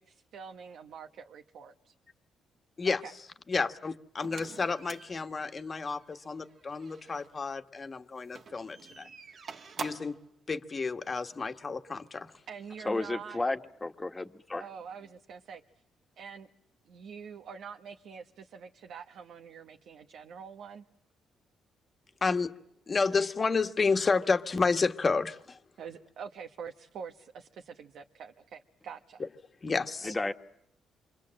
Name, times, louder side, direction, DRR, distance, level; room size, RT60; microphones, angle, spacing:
voice 1, 0.0-1.9 2.8-3.1 11.1-11.2 12.5-13.4 14.6-15.6 16.2-16.5 16.8-20.8 25.8-29.2 30.0-30.1, right 6 dB, 70° right, 5 dB, 1.4 m, -45 dB
voice 2, 3.5-9.1 9.8-10.2 10.5-12.3 22.2-22.5 22.9-25.6 29.6-30.1, left 4 dB, 35° left, 7 dB, 1.5 m, -30 dB
sound 1, 4.2-7.3 8.2-10.2, right 5 dB, 50° right, 1.8 m, -46 dB
voice 3, 12.8-14.7 30.0-30.3, left 2 dB, 15° left, 7 dB, 1.6 m, -32 dB
28.0 x 24.5 x 7.7 m, 0.77 s
cardioid pair, 90°, 0 cm